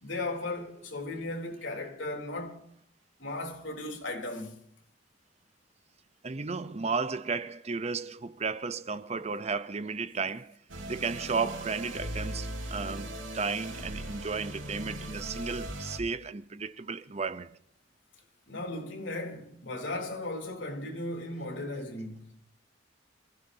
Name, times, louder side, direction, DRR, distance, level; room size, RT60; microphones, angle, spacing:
voice 1, 0.0-2.6 3.2-4.6 18.5-22.3, left 2 dB, 70° left, 3.8 m, -36 dB
voice 2, 6.2-10.6 10.9-17.6, right 4 dB, 35° right, 0.6 m, -34 dB
sound 1, 10.7-16.0, right 1 dB, 80° right, 3.8 m, -39 dB
27.0 x 16.0 x 2.8 m
head